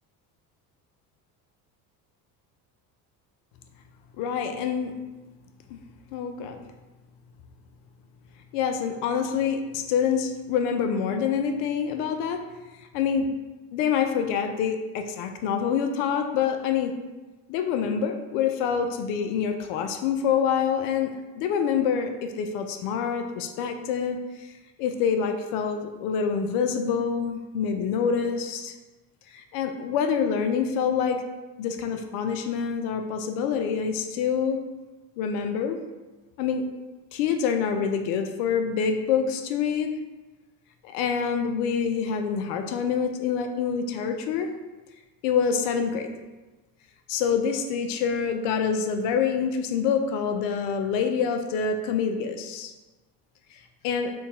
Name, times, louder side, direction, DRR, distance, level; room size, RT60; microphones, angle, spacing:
voice 1, 4.2-5.0 5.7-5.8 6.1-6.6 8.5-12.4 12.9-13.3 13.7-16.9 17.5-24.5 24.8-28.7 29.3-31.2 31.6-34.6 35.2-35.8 36.4-36.7 37.1-39.9 40.8-44.5 45.2-46.1 47.1-52.7 53.5-54.1, left 7 dB, 75° left, 6 dB, 0.5 m, -26 dB
2.8 x 2.7 x 3.6 m, 1.2 s
hypercardioid pair, 70°, 46 cm